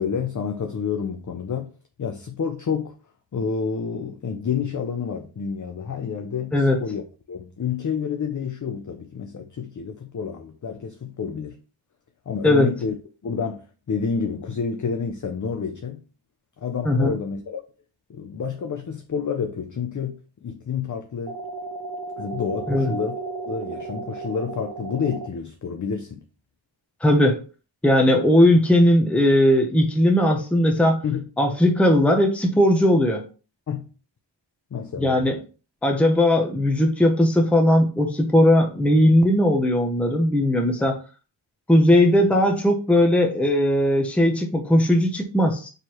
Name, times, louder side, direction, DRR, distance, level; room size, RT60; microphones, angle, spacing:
voice 1, 0.0-1.7 2.0-2.9 3.3-7.0 7.3-11.6 12.3-13.0 13.2-16.0 16.6-17.6 18.1-21.4 22.2-23.2 23.5-26.2 31.0-31.3 33.7-33.8 34.7-35.4 40.8-40.9, left 6 dB, 40° left, 0.5 m, -29 dB
voice 2, 16.9-17.2 22.7-22.9 27.0-27.4 27.8-31.0 31.4-33.2 35.0-35.3 35.8-40.9 41.7-45.7, left 1 dB, 5° left, 0.7 m, -18 dB
sound 1, 21.3-25.3, right 3 dB, 55° right, 0.6 m, -34 dB
4.5 x 3.2 x 2.9 m
wide cardioid pair, 90°, 46 cm